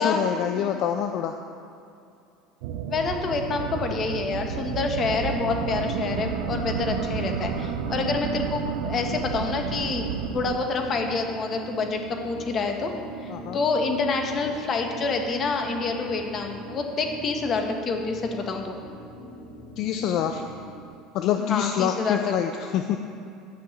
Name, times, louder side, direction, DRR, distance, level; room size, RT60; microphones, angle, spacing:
voice 1, 0.0-1.4 13.3-13.6 19.8-20.4 21.1-23.0, left 9 dB, 55° left, 6 dB, 0.6 m, -26 dB
sound 1, 2.6-10.6, right 8 dB, 80° right, 0.7 m, -31 dB
voice 2, 2.9-12.9 13.2-18.7 21.4-22.3, left 4 dB, 35° left, 3 dB, 1.4 m, -27 dB
sound 2, 5.2-20.9, right 1 dB, 75° left, 2.1 m, -40 dB
10.5 x 6.0 x 8.4 m, 2.6 s
supercardioid pair, 125°, 0 cm